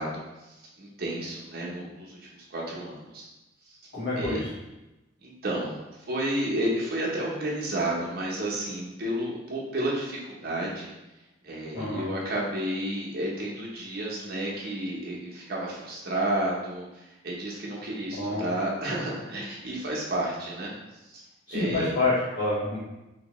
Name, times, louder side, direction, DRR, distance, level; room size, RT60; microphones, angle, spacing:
voice 1, 0.0-2.2 2.5-3.3 3.7-3.8 4.2-4.4 5.2-10.9 11.4-20.7 21.0-21.2 21.5-21.9, right 1 dB, 55° right, -4 dB, 0.9 m, -31 dB
voice 2, 3.9-4.4 11.7-12.0 18.2-18.5 21.5-22.8, left 2 dB, 70° left, -11 dB, 1.1 m, -27 dB
3.6 x 3.1 x 3.0 m, 1.0 s
head